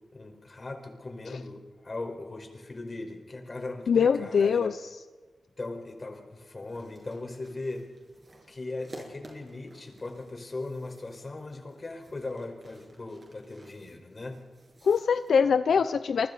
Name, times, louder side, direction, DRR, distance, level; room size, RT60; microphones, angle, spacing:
voice 1, 0.1-4.6 5.6-7.9 8.5-14.4, left 2 dB, 40° left, 4 dB, 4.8 m, -39 dB
voice 2, 3.9-4.8 14.8-16.3, left 6 dB, 85° left, 11 dB, 0.6 m, -23 dB
sound 1, 6.7-15.4, right 2 dB, 40° right, 7.5 m, -54 dB
28.5 x 24.0 x 4.2 m, 1.3 s
cardioid pair, 60°, 0 cm